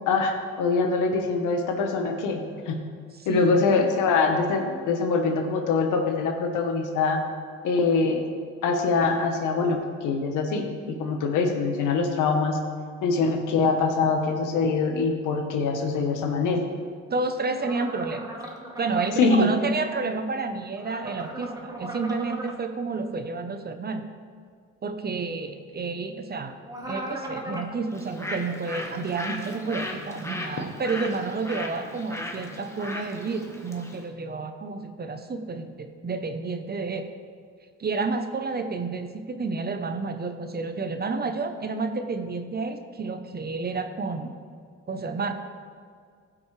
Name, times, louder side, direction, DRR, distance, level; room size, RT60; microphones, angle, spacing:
voice 1, 0.1-2.8 3.3-7.2 7.6-8.3 8.6-12.6 13.0-16.6 19.2-19.5, left 4 dB, 90° left, 4 dB, 1.2 m, -24 dB
voice 2, 3.1-3.6 17.1-18.3 18.8-24.0 24.8-26.6 26.9-37.1 37.8-44.3 44.9-45.3, right 4 dB, 30° right, 8 dB, 0.8 m, -30 dB
sound 1, 17.6-19.1 20.8-22.5 26.6-27.7, right 1 dB, 10° right, 1.3 m, -37 dB
Bird, 27.9-34.0, left 1 dB, 10° left, 1.2 m, -37 dB
15.5 x 6.2 x 3.3 m, 2.1 s
cardioid pair, 90°, 30 cm